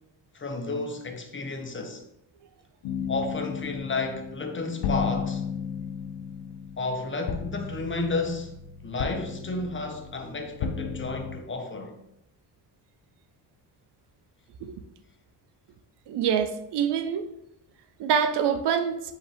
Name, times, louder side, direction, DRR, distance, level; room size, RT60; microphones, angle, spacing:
voice 1, 0.3-2.0 3.1-5.4 6.8-8.5 8.8-12.0, left 3 dB, 30° left, 0.9 m, -32 dB
sound 1, 2.8-11.4, left 6 dB, 75° left, 0.6 m, -34 dB
voice 2, 16.1-17.3 18.0-19.0, right 7 dB, 70° right, 0.6 m, -25 dB
5.2 x 2.9 x 3.4 m
cardioid pair, 65°, 43 cm